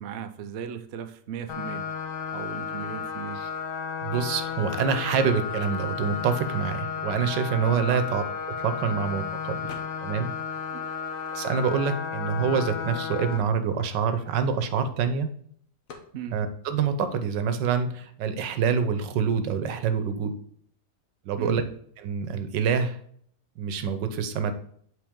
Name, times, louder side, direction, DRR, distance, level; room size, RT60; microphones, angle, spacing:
voice 1, 0.0-1.9 2.3-3.4 7.9-8.0 10.7-10.9 16.1-16.4 21.4-21.7, right 8 dB, 70° right, 8 dB, 0.6 m, -37 dB
sound 1, 1.5-13.4, left 6 dB, 70° left, 1.8 m, -33 dB
voice 2, 4.0-8.2 8.6-9.7 10.0-10.3 11.3-15.3 16.3-20.3 21.2-21.6 22.0-23.0 23.6-24.5, right 6 dB, 85° right, 9 dB, 1.4 m, -26 dB
sound 2, 9.7-10.3 10.6-11.9 12.5-12.6 12.8-15.0 15.9-16.2, left 4 dB, 55° left, 1.3 m, -50 dB
7.8 x 4.2 x 3.6 m, 0.62 s
omnidirectional pair, 1.9 m